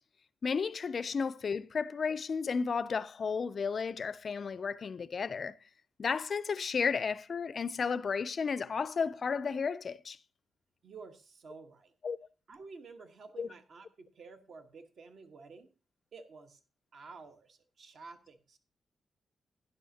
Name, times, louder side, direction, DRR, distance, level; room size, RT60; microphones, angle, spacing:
voice 1, 0.4-5.5 6.0-10.2 12.0-12.2 13.4-13.5, left 5 dB, 45° left, 0.4 m, -33 dB
voice 2, 10.8-11.9 12.5-15.7 16.1-16.6 16.9-18.6, right 4 dB, 60° right, 1.2 m, -51 dB
11.0 x 11.0 x 2.8 m
wide cardioid pair, 135°, 0 cm